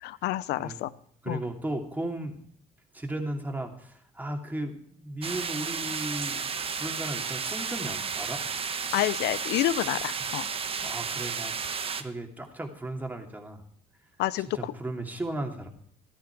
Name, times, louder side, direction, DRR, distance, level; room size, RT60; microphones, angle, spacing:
voice 1, 0.0-0.9 1.3-1.4 8.9-10.5 14.2-14.7, left 14 dB, 80° left, 17 dB, 0.7 m, -28 dB
voice 2, 1.2-2.4 2.9-6.5 6.7-8.4 10.8-11.5 11.9-13.6 14.5-15.7, right 1 dB, 10° right, 2 dB, 2.6 m, -35 dB
sound 1, 5.2-12.0, right 6 dB, 35° right, 1.1 m, -33 dB
14.5 x 13.0 x 4.7 m, 0.64 s
cardioid pair, 110°, 17 cm